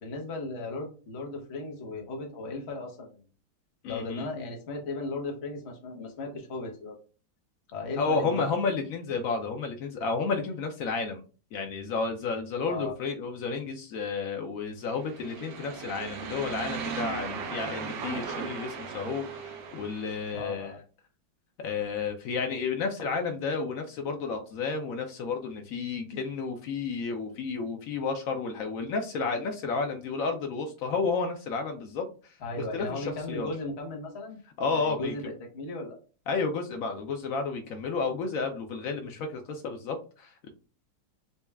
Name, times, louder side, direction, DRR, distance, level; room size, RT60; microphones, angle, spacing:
voice 1, 0.0-3.2 3.8-7.0 7.7-8.6 12.7-12.9 17.9-18.1 20.3-20.8 32.4-34.4 34.7-36.0, left 2 dB, 45° left, 2 dB, 1.0 m, -36 dB
voice 2, 3.8-4.3 8.0-11.2 11.5-20.7 21.6-33.5 34.6-35.1 36.3-40.5, left 4 dB, 90° left, 4 dB, 0.7 m, -31 dB
sound 1, 14.9-20.4, right 6 dB, 70° right, 1.3 m, -37 dB
4.2 x 2.3 x 3.3 m, 0.36 s
omnidirectional pair, 2.1 m